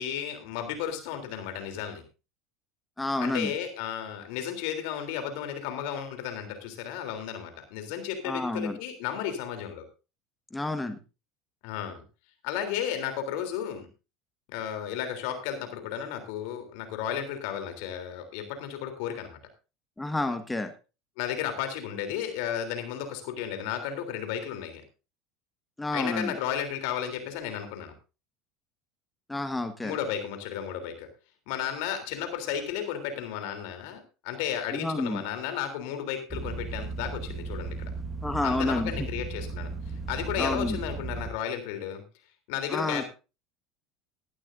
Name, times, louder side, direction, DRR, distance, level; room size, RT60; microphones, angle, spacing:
voice 1, 0.0-2.0 3.2-9.8 11.6-12.0 12.4-13.9 14.5-19.4 21.2-24.8 25.9-27.9 29.8-31.1 31.5-37.9 38.4-39.7 40.1-42.0 42.5-43.1, left 9 dB, 70° left, 7 dB, 3.3 m, -33 dB
voice 2, 3.0-3.5 8.2-8.8 10.5-11.0 20.0-20.7 25.8-26.3 29.3-30.0 34.7-35.2 38.2-38.9 40.4-40.8 42.7-43.0, left 2 dB, 10° left, 8 dB, 1.5 m, -29 dB
sound 1, 36.3-41.3, right 3 dB, 20° right, 1.9 m, -36 dB
17.0 x 11.5 x 2.6 m, 0.30 s
hypercardioid pair, 85°, 0 cm